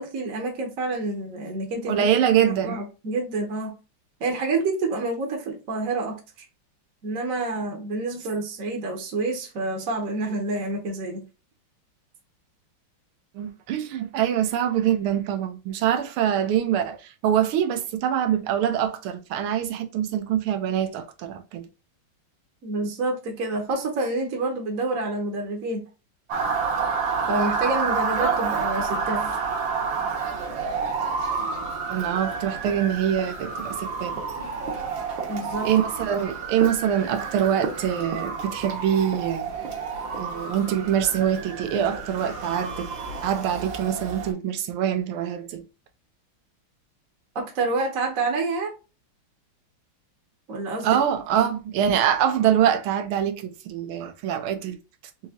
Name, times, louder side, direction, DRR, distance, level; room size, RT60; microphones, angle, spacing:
voice 1, 0.0-2.1 2.4-3.7 4.2-6.2 7.0-11.2 22.6-25.8 27.3-29.4 34.3-35.0 35.3-35.7 47.3-48.7 50.5-51.0 51.4-51.5, right 2 dB, 50° right, 1.1 m, -28 dB
voice 2, 1.9-2.8 13.3-21.7 31.9-34.2 35.6-39.6 40.2-42.9 43.2-45.6 50.8-54.8, right 9 dB, 90° right, 1.6 m, -24 dB
Motor vehicle (road) / Siren, 26.3-44.3, right 5 dB, 65° right, 1.7 m, -29 dB
4.7 x 2.9 x 2.7 m
omnidirectional pair, 2.3 m